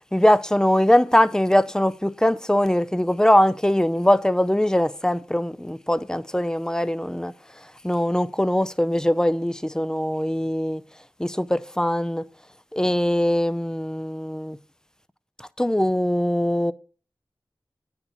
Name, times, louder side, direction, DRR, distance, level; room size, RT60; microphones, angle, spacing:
voice 1, 0.1-7.3 7.8-10.8 11.2-12.2 12.7-14.6 15.6-16.7, left 1 dB, 5° left, 0.5 m, -21 dB
9.7 x 4.4 x 6.9 m
wide cardioid pair, 55°, 9 cm